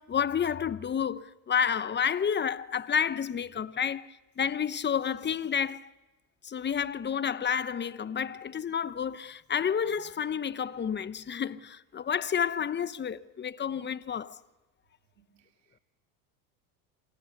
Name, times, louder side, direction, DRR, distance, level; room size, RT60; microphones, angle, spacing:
voice 1, 0.0-5.9 6.4-14.4, left 7 dB, 20° left, 1.0 m, -30 dB
voice 2, 15.2-15.8, right 9 dB, 90° right, 2.8 m, -68 dB
28.0 x 26.0 x 6.7 m
hypercardioid pair, 95°, 49 cm